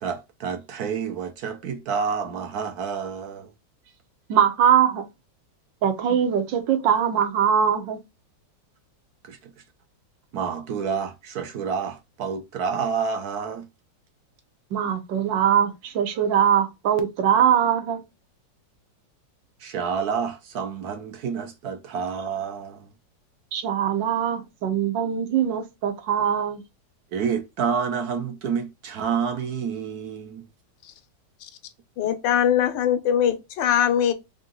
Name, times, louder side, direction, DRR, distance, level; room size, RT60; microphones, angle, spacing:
voice 1, 0.0-3.5 9.2-9.5 10.3-13.7 19.6-22.9 27.1-30.5, right 6 dB, 65° right, 1.1 m, -29 dB
voice 2, 4.3-5.1 5.8-8.0 14.7-18.0 23.5-26.6, right 8 dB, 85° right, 1.5 m, -22 dB
voice 3, 32.0-34.1, left 9 dB, 80° left, 1.4 m, -21 dB
3.8 x 2.7 x 3.7 m
omnidirectional pair, 2.0 m